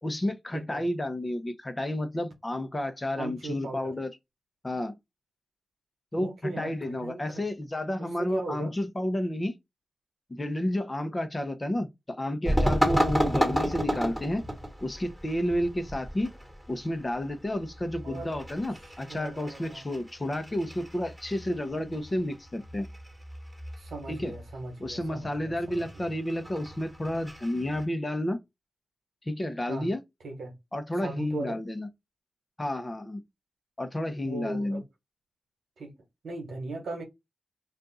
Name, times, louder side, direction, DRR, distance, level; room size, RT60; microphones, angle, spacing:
voice 1, 0.0-4.1 4.6-5.0 6.1-9.5 10.3-14.4 14.8-16.3 16.7-22.9 24.1-24.3 24.8-28.4 29.3-30.0 30.7-31.9 32.6-33.2 33.8-34.8, left 1 dB, 25° left, 0.7 m, -31 dB
voice 2, 0.5-0.8 3.2-3.9 6.2-7.4 8.0-8.7 18.0-18.3 18.8-19.9 23.8-26.2 29.7-29.9 30.2-30.5 31.0-31.6 34.2-34.8 35.8-36.0 36.2-37.0, right 2 dB, 90° right, 1.1 m, -38 dB
sound 1, 12.4-27.8, equal, 5° right, 1.4 m, -32 dB
2.5 x 2.4 x 4.0 m
cardioid pair, 55°, 0 cm